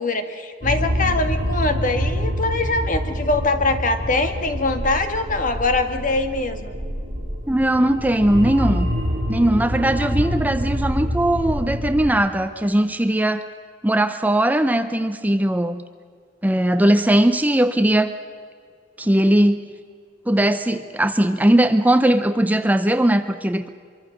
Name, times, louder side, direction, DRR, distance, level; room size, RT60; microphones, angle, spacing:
voice 1, 0.0-6.7, left 3 dB, 45° left, 7 dB, 1.8 m, -23 dB
sound 1, 0.6-12.1, equal, 50° right, 6.5 m, -26 dB
voice 2, 7.5-8.9 9.3-13.4 13.8-15.8 16.4-18.1 19.0-19.6 20.3-23.7, right 1 dB, 10° right, 9 dB, 0.7 m, -19 dB
25.0 x 23.5 x 6.5 m, 2.1 s
head